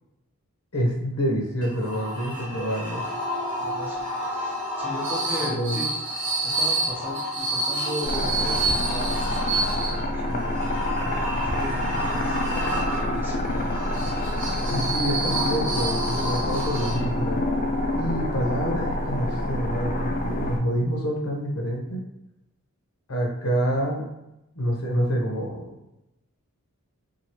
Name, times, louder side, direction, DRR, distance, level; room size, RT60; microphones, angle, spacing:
voice 1, 0.7-3.0 5.4-5.8 14.7-17.4 17.9-22.0 23.1-24.1 24.6-25.7, equal, 70° left, 0 dB, 0.8 m, -27 dB
sound 1, 1.6-17.3, right 1 dB, 65° right, 0.9 m, -29 dB
voice 2, 3.6-5.9 6.4-12.4 13.0-13.5, equal, 10° right, -4 dB, 0.6 m, -36 dB
sound 2, 8.0-20.6, left 1 dB, 40° left, 0.4 m, -27 dB
2.8 x 2.6 x 2.9 m, 0.88 s
head